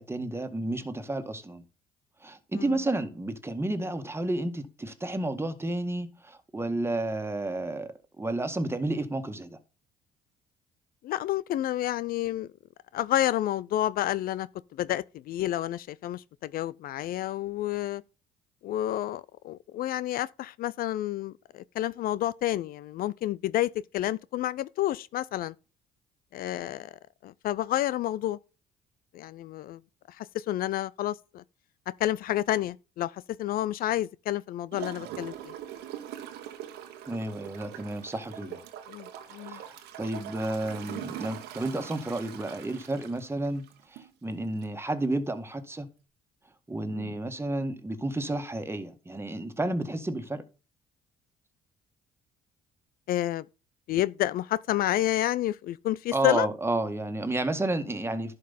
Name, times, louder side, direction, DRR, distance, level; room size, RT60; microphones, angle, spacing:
voice 1, 0.0-1.6 2.2-9.6 37.1-38.6 39.3-43.6 43.9-45.9 46.7-50.4 56.1-58.4, right 2 dB, 15° right, 1.8 m, -31 dB
voice 2, 11.0-12.5 12.9-14.5 14.8-18.0 18.6-25.5 26.3-26.9 27.2-28.4 29.1-29.8 30.1-31.4 32.0-35.5 38.9-39.6 46.9-47.2 53.1-53.4 53.9-56.5, left 13 dB, 60° left, 0.4 m, -30 dB
Gurgling / Toilet flush, 34.7-44.1 44.6-44.7, right 10 dB, 80° right, 1.4 m, -42 dB
11.0 x 5.3 x 4.1 m
supercardioid pair, 70°, 17 cm